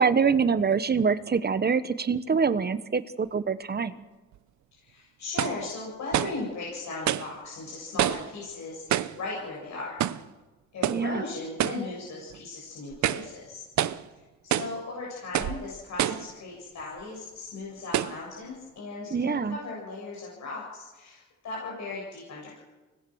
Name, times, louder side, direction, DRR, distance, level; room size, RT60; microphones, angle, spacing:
voice 1, 0.0-3.9 10.9-11.2 19.1-19.6, right 5 dB, 35° right, 13 dB, 1.2 m, -25 dB
sound 1, 4.3-4.4 5.4-5.6 6.1-6.4 7.1-7.3 8.0-8.3 8.9-9.2 10.0-10.3 10.8-11.1 11.6-11.9 12.3-12.4 12.9-13.3 13.8-14.1 14.5-14.8 15.3-15.6 16.0-16.3 17.0-17.1 17.9-18.2, right 12 dB, 70° right, 0.8 m, -27 dB
voice 2, 4.7-10.0 10.7-13.6 14.1-22.6, left 3 dB, 65° left, -3 dB, 7.3 m, -37 dB
24.5 x 19.0 x 6.4 m, 1.2 s
cardioid pair, 90°, 30 cm